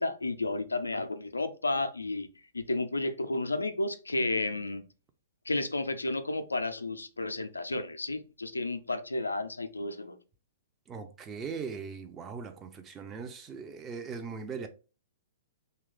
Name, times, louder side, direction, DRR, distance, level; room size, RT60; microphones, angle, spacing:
voice 1, 0.0-2.3 2.5-4.8 5.5-10.2, left 2 dB, 80° left, 0.4 m, -32 dB
voice 2, 10.9-14.7, right 5 dB, 20° right, 0.4 m, -40 dB
2.9 x 2.3 x 3.5 m
figure-of-eight pair, 110°, 0 cm